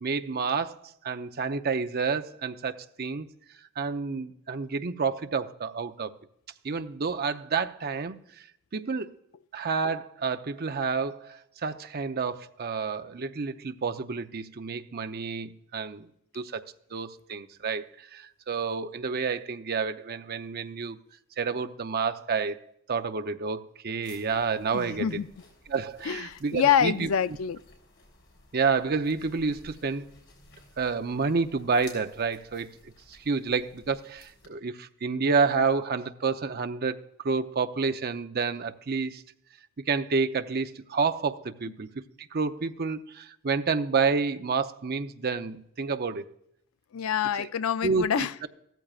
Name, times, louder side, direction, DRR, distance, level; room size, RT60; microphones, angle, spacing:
voice 1, 0.0-3.3 3.8-6.1 6.6-8.2 8.7-9.1 9.5-16.1 16.3-16.6 16.9-21.0 21.4-22.6 22.9-25.1 25.7-27.1 28.5-30.1 30.8-32.7 33.1-39.2 39.9-41.9 42.2-46.2 47.4-47.5 47.8-48.5, right 5 dB, 50° right, 0.6 m, -29 dB
sound 1, 24.0-34.5, left 2 dB, 60° left, 3.5 m, -55 dB
voice 2, 24.7-25.3 26.0-27.6 46.9-48.5, left 8 dB, 90° left, 0.5 m, -26 dB
15.0 x 13.5 x 2.4 m
head